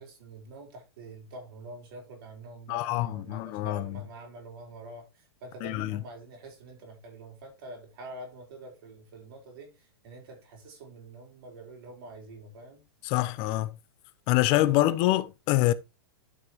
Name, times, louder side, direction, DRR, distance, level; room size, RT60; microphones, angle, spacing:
voice 1, 0.0-12.8 14.4-14.8, right 2 dB, 60° right, 5.3 m, -46 dB
voice 2, 2.7-3.8 5.6-6.0 13.0-13.7 14.3-15.7, left 16 dB, 40° left, 0.8 m, -25 dB
12.0 x 6.0 x 3.1 m
hypercardioid pair, 110°, 13 cm